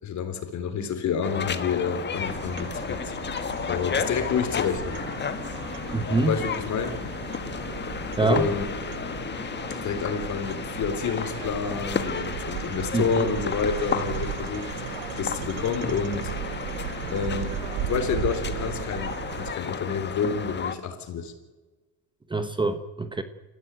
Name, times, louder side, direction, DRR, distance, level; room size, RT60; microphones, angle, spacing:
voice 1, 0.0-3.1 3.7-5.0 6.2-7.0 8.2-8.7 9.8-14.7 15.2-16.3 17.1-21.3, left 6 dB, 45° left, 9 dB, 3.6 m, -29 dB
sound 1, 1.2-20.7, left 6 dB, 25° left, 1.6 m, -33 dB
sound 2, 2.1-19.5, right 13 dB, 75° right, 1.3 m, -36 dB
voice 2, 5.9-6.4 8.2-8.5 12.9-13.3 22.3-23.2, right 3 dB, 10° right, 10 dB, 1.1 m, -25 dB
27.5 x 15.0 x 9.2 m, 1.3 s
cardioid pair, 125°, 39 cm